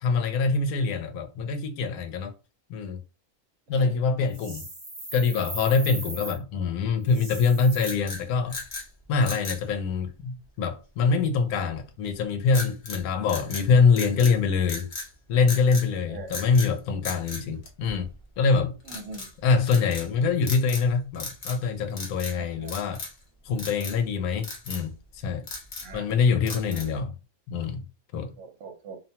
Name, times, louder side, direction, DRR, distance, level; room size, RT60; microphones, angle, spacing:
voice 1, 0.0-2.3 2.7-3.0 3.7-4.6 5.1-8.6 9.1-14.9 15.3-18.1 18.4-18.8 19.4-23.0 23.5-24.9 25.2-25.4 25.9-27.1 27.5-27.8 28.1-28.3, left 5 dB, 90° left, 1.1 m, -24 dB
sound 1, 4.3-6.4 7.0-7.9, right 2 dB, 25° right, 1.0 m, -38 dB
sound 2, 7.8-8.9 9.2-9.6 12.5-13.0 13.3-14.4 14.6-15.1 15.5-15.9 16.3-16.7 17.0-18.2 18.8-19.3 19.7-20.1 20.4-20.9 21.1-21.6 21.9-22.4 22.7-23.2 23.6-24.0 24.4-24.8 25.3-26.0 26.5-27.0, left 3 dB, 45° left, 0.7 m, -37 dB
voice 2, 16.1-16.5 17.5-17.6 18.8-19.3 22.3-22.8 25.8-26.1 26.7-26.9 28.4-29.0, right 3 dB, 65° right, 1.0 m, -42 dB
2.6 x 2.1 x 2.8 m
omnidirectional pair, 1.5 m